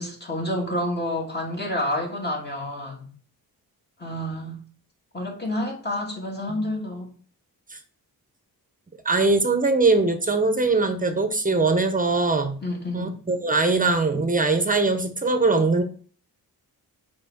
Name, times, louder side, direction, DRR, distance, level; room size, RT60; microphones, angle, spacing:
voice 1, 0.0-3.1 4.0-4.6 5.1-7.1 12.6-13.2, left 1 dB, 25° left, 2.6 m, -29 dB
voice 2, 9.0-12.6 12.9-15.8, right 3 dB, 20° right, 1.1 m, -21 dB
6.1 x 5.0 x 5.9 m
wide cardioid pair, 115°, 38 cm